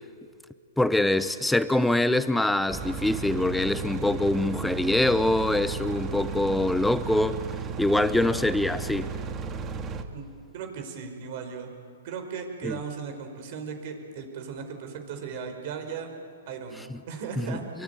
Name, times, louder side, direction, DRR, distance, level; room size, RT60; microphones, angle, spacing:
voice 1, 0.8-7.4 7.8-9.1 12.6-12.8 17.4-17.6, left 1 dB, 5° left, 13 dB, 0.8 m, -24 dB
sound 1, 2.7-10.0, right 5 dB, 25° right, 1.8 m, -34 dB
voice 2, 10.5-11.7 12.0-16.1 16.5-17.6, right 6 dB, 50° right, 6 dB, 5.3 m, -37 dB
27.0 x 23.0 x 9.5 m, 2.3 s
hypercardioid pair, 140°, 0 cm